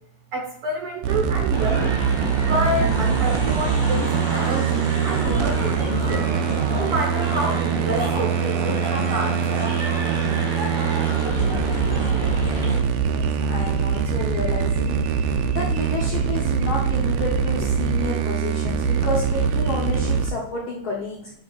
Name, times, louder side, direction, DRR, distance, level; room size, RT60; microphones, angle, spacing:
voice 1, 0.3-2.0 2.4-6.3 6.7-9.7, right 2 dB, 55° right, 2 dB, 1.8 m, -28 dB
sound 1, 1.0-20.3, right 7 dB, 80° right, 1.3 m, -23 dB
sound 2, 1.5-12.8, right 1 dB, 10° right, 2.0 m, -29 dB
voice 2, 13.0-15.0 15.5-21.2, left 3 dB, 60° left, -2 dB, 1.5 m, -30 dB
9.9 x 8.5 x 2.5 m, 0.68 s
omnidirectional pair, 3.5 m